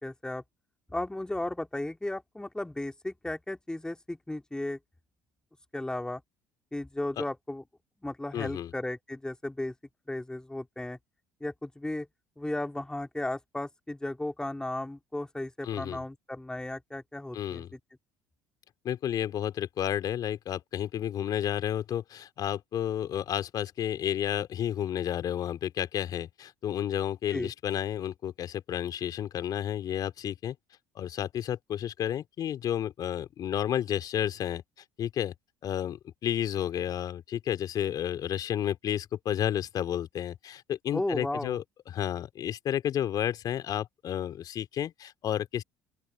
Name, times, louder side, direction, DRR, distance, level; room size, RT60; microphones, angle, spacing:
voice 1, 0.0-0.4 0.9-4.8 5.7-6.2 6.7-7.6 8.0-9.7 10.1-11.0 11.4-12.1 12.4-17.8 27.3-27.5 40.9-41.6, left 1 dB, 10° left, 3.5 m, -35 dB
voice 2, 8.3-8.7 15.6-16.0 17.3-17.7 18.8-30.6 30.9-34.6 35.0-35.3 35.6-45.6, left 10 dB, 50° left, 2.8 m, -31 dB
open air
hypercardioid pair, 60°, 8 cm